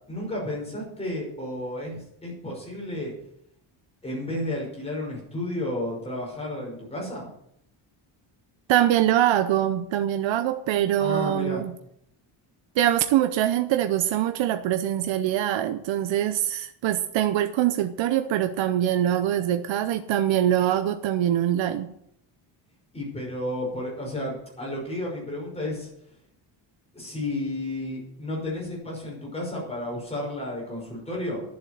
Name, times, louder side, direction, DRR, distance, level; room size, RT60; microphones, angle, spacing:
voice 1, 0.1-3.1 4.0-7.3 11.0-11.6 22.9-25.9 26.9-31.4, left 1 dB, 10° left, -3 dB, 5.8 m, -32 dB
voice 2, 8.7-11.7 12.8-21.9, right 11 dB, 65° right, 9 dB, 0.8 m, -23 dB
11.0 x 7.7 x 9.3 m, 0.73 s
cardioid pair, 175°, 48 cm